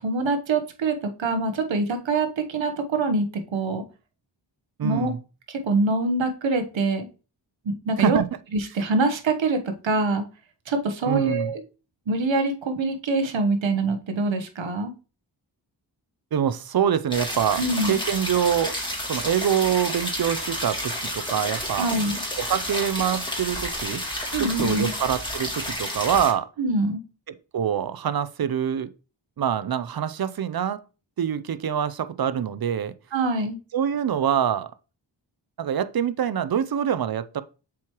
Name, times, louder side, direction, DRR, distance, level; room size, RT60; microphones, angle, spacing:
voice 1, 0.0-3.8 4.8-5.1 5.5-7.1 7.6-8.2 8.5-10.2 10.7-11.6 12.1-14.9 17.6-18.0 21.8-22.2 24.3-24.9 26.6-27.0 33.1-33.6, right 3 dB, 80° right, 1.1 m, -24 dB
voice 2, 4.8-5.2 8.0-8.3 11.0-11.5 16.3-17.6 17.9-18.8 19.1-21.9 22.4-24.0 24.4-26.5 27.5-28.9 29.4-30.8 31.2-32.9 33.7-34.7 35.6-37.4, right 9 dB, 55° right, 0.6 m, -25 dB
sound 1, 17.1-26.3, left 1 dB, 10° left, 2.3 m, -30 dB
7.0 x 4.7 x 3.0 m
cardioid pair, 60°, 45 cm